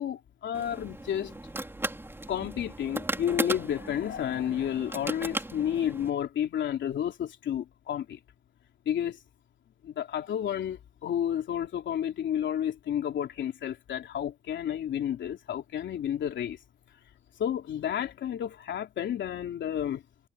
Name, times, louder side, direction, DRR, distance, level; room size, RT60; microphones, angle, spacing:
voice 1, 0.0-1.3 2.3-8.2 8.8-9.2 9.8-16.6 17.4-20.0, left 10 dB, 65° left, 3.4 m, -31 dB
sound 1, 0.5-6.1, right 1 dB, 10° right, 4.3 m, -36 dB
cardioid pair, 90°, 20 cm